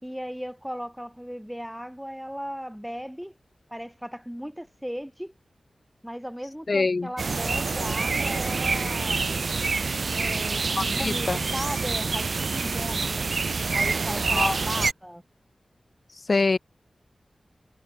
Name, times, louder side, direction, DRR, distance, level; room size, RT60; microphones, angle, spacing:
voice 1, 0.0-3.3 3.7-5.3 6.0-9.3 10.1-13.1 13.7-15.2, equal, 5° right, 5.2 m, -36 dB
voice 2, 6.7-7.1 10.7-11.4 14.3-14.6 16.1-16.6, left 3 dB, 55° left, 1.1 m, -25 dB
sound 1, 7.2-14.9, right 4 dB, 65° right, 1.4 m, -27 dB
wide cardioid pair, 65°, 0 cm